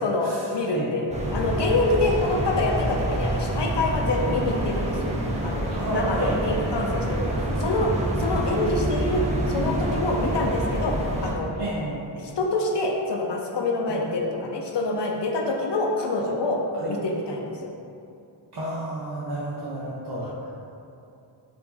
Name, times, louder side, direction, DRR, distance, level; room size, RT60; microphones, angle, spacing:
voice 1, 0.0-5.1 5.4-7.9 8.2-11.0 11.2-11.5 12.2-16.6 16.9-17.7 20.2-20.3, left 2 dB, 60° left, 0 dB, 0.6 m, -26 dB
sound 1, 1.1-11.3, right 1 dB, 15° right, 0.6 m, -27 dB
voice 2, 5.7-6.3 11.6-12.0 13.9-14.0 16.8-16.9 18.5-20.5, right 1 dB, 55° right, -7 dB, 0.8 m, -31 dB
4.4 x 2.8 x 4.1 m, 2.6 s
wide cardioid pair, 75°, 49 cm